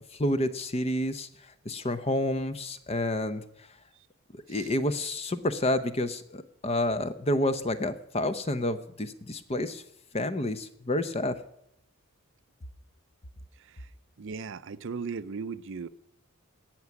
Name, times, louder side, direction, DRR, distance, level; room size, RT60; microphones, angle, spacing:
voice 1, 0.2-1.3 1.7-3.4 4.5-9.8 10.1-11.3, left 1 dB, 25° left, 0.7 m, -29 dB
voice 2, 13.6-13.9 14.2-15.9, right 5 dB, 55° right, 0.5 m, -38 dB
17.5 x 6.0 x 9.5 m
head